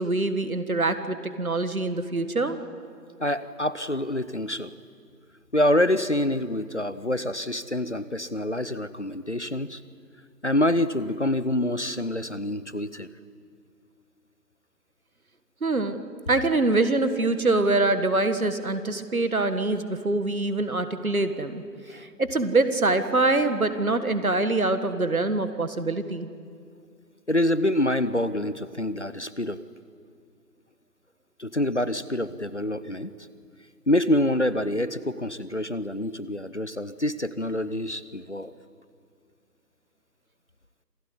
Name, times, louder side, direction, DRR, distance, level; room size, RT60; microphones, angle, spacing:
voice 1, 0.0-2.6 15.6-21.6 21.9-26.3, right 2 dB, 55° right, 10 dB, 1.8 m, -24 dB
voice 2, 3.2-4.7 5.5-9.8 10.4-13.1 21.9-22.0 27.3-29.6 31.4-33.1 33.9-38.5, left 1 dB, 45° left, 15 dB, 0.8 m, -26 dB
27.0 x 16.5 x 9.8 m, 2.2 s
figure-of-eight pair, 170°, 49 cm